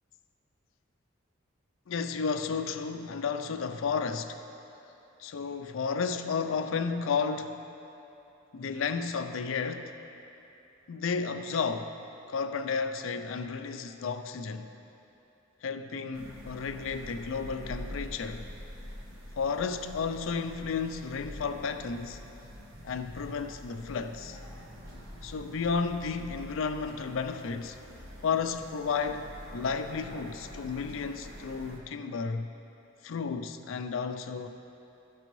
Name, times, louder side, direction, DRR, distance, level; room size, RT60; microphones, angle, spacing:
voice 1, 1.9-4.4 5.2-7.6 8.5-9.9 10.9-11.9 12.3-14.7 15.6-18.5 19.4-22.2 22.8-24.4 25.2-27.8 28.2-32.5 33.0-34.5, left 5 dB, 70° left, 8 dB, 0.4 m, -32 dB
sound 1, 16.1-31.8, equal, 75° right, 1.1 m, -46 dB
13.0 x 6.0 x 3.1 m, 2.9 s
head